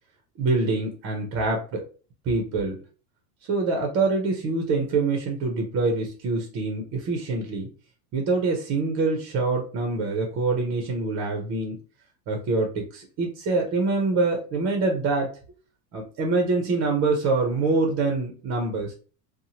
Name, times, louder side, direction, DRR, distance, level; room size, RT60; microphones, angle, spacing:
voice 1, 0.4-1.8 2.3-2.8 3.5-7.7 8.1-11.8 12.3-15.3 15.9-18.9, right 3 dB, 30° right, 2 dB, 0.6 m, -25 dB
2.8 x 2.1 x 2.8 m, 0.38 s
supercardioid pair, 130°, 48 cm